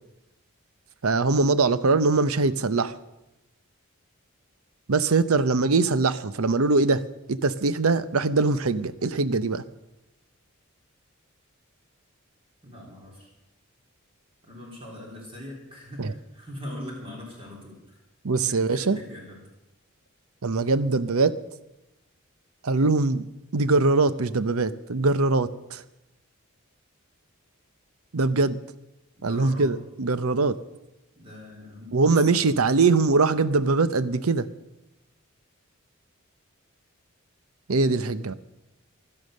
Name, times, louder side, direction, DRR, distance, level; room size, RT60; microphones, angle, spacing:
voice 1, 1.0-2.9 4.9-7.0 7.3-9.6 16.0-16.1 18.2-19.0 20.4-21.4 22.6-23.2 23.5-25.8 28.1-28.6 29.2-30.6 31.9-34.5 37.7-38.3, right 3 dB, 80° right, 14 dB, 0.7 m, -22 dB
voice 2, 12.6-13.3 14.4-18.0 18.5-19.4 29.2-29.7 31.1-32.6, left 1 dB, 25° right, -2 dB, 3.5 m, -41 dB
16.0 x 12.0 x 6.5 m, 0.94 s
head